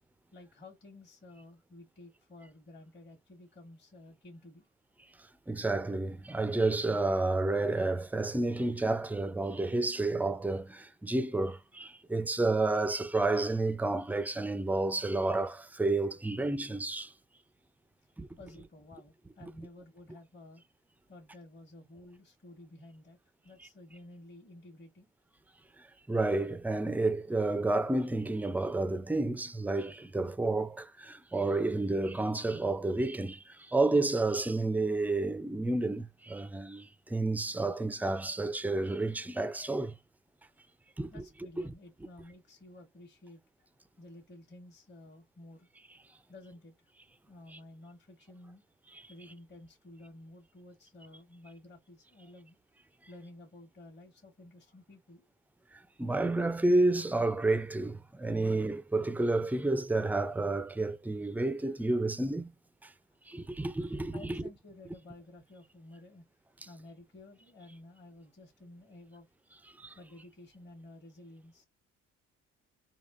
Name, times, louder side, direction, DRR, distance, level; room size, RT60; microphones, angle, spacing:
voice 1, 0.3-4.7 5.5-5.7 18.4-20.6 21.1-23.2 23.4-25.1 41.1-43.7 44.0-45.7 46.3-46.9 47.3-48.6 49.1-52.6 53.1-55.3 62.8-63.0 64.1-66.3 66.6-69.3 70.0-71.7, left 1 dB, 35° left, 1.2 m, -53 dB
voice 2, 5.5-17.1 18.2-18.3 19.4-19.5 26.1-39.9 41.0-41.2 48.9-49.0 56.0-62.5 62.8-62.9 63.3-64.2 69.8-69.9, right 2 dB, 5° right, 0.3 m, -30 dB
3.5 x 2.4 x 2.4 m
cardioid pair, 90°, 30 cm